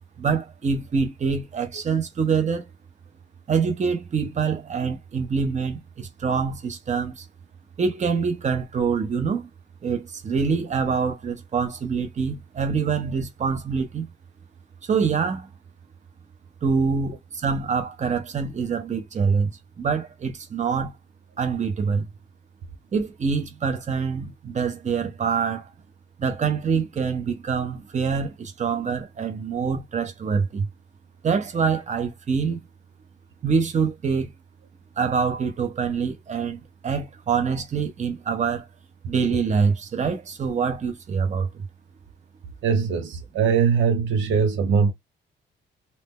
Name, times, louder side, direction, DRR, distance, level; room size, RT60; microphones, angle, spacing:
voice 1, 0.2-2.7 3.5-7.2 7.8-9.5 9.8-14.1 14.8-15.5 16.6-20.9 21.4-22.1 22.9-25.7 26.2-30.7 31.2-32.6 33.4-34.3 35.0-38.7 39.1-41.7, right 5 dB, 35° right, 0.8 m, -25 dB
voice 2, 42.6-44.9, right 6 dB, 75° right, 0.7 m, -21 dB
2.8 x 2.1 x 3.5 m
cardioid pair, 90°, 20 cm